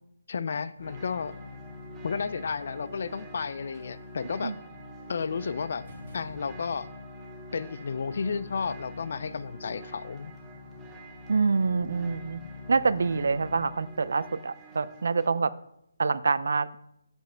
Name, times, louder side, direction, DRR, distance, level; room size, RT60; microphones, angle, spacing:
voice 1, 0.3-1.3 2.0-4.5 5.1-5.8 6.1-6.9 7.5-10.3, left 5 dB, 45° left, 15 dB, 0.3 m, -32 dB
sound 1, 0.8-14.2, left 5 dB, 60° left, 1.2 m, -46 dB
sound 2, 0.8-15.3, right 5 dB, 10° right, 0.6 m, -49 dB
sound 3, 5.8-7.1, right 1 dB, 35° right, 1.9 m, -51 dB
voice 2, 11.3-12.4 12.7-15.5 16.0-16.8, right 4 dB, 60° right, 17 dB, 0.4 m, -26 dB
7.2 x 5.3 x 4.4 m, 0.78 s
hypercardioid pair, 175°, 0 cm